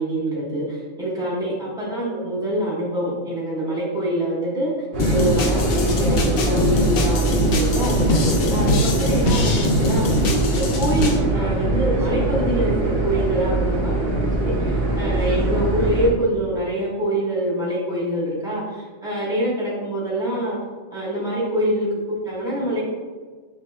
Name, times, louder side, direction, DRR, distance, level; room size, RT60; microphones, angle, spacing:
voice 1, 0.0-4.7 5.1-10.3 10.5-20.6 20.9-22.8, right 1 dB, 5° right, -7 dB, 1.1 m, -25 dB
sound 1, 4.9-16.1, right 2 dB, 55° right, 0.8 m, -22 dB
sound 2, 5.0-11.2, left 1 dB, 60° left, 0.6 m, -22 dB
5.6 x 2.7 x 2.3 m, 1.5 s
omnidirectional pair, 1.3 m